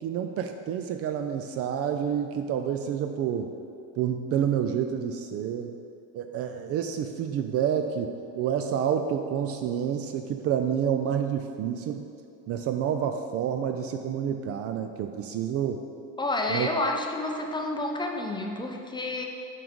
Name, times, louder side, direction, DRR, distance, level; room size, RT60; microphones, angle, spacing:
voice 1, 0.0-3.5 4.0-5.8 6.1-12.0 12.5-15.8 16.5-16.7, right 8 dB, 45° right, 7 dB, 0.4 m, -28 dB
voice 2, 16.2-19.2, left 2 dB, 15° left, 2 dB, 0.6 m, -29 dB
6.0 x 4.7 x 5.1 m, 2.5 s
supercardioid pair, 100°, 36 cm